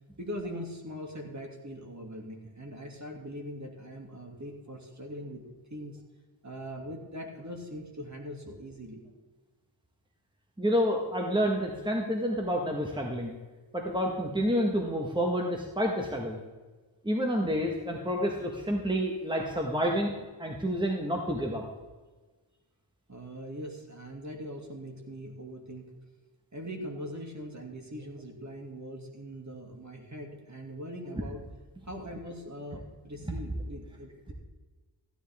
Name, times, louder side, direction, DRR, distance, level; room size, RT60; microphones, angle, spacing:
voice 1, 0.2-5.4 5.7-6.0 6.4-9.1 23.1-25.9 26.5-31.4 31.9-34.3, equal, 35° right, 1 dB, 2.6 m, -41 dB
voice 2, 10.6-13.4 13.7-16.4 17.0-21.6 33.3-33.4, equal, 10° right, 0 dB, 1.6 m, -29 dB
15.0 x 10.0 x 3.7 m, 1.3 s
cardioid pair, 45°, 47 cm